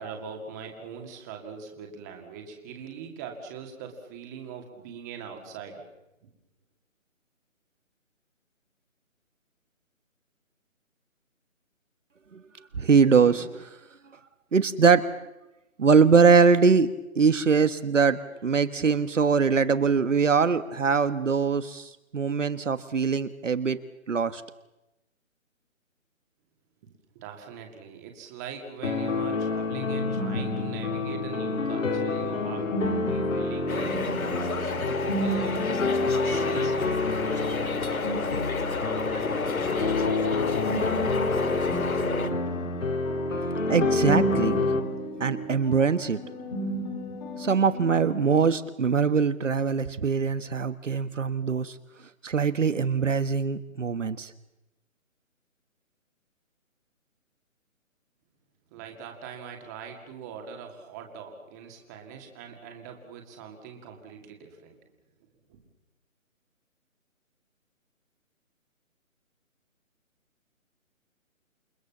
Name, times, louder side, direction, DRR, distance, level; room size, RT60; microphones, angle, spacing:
voice 1, 0.0-5.9 27.1-34.2 34.7-38.0 58.7-64.8 65.5-65.6, right 6 dB, 15° right, 3 dB, 2.2 m, -42 dB
voice 2, 12.8-13.7 14.5-15.0 15.8-16.9 17.1-23.8 24.1-24.4 43.7-44.6 45.2-46.2 47.4-51.7 52.2-54.3, right 5 dB, 65° right, 12 dB, 1.5 m, -22 dB
sound 1, 28.8-44.8, left 3 dB, 65° left, 3.6 m, -28 dB
sound 2, 29.7-48.5, right 1 dB, 30° left, 3.4 m, -35 dB
sound 3, 33.7-42.3, left 4 dB, 90° left, 2.5 m, -31 dB
29.0 x 21.0 x 7.2 m, 0.95 s
hypercardioid pair, 170°, 41 cm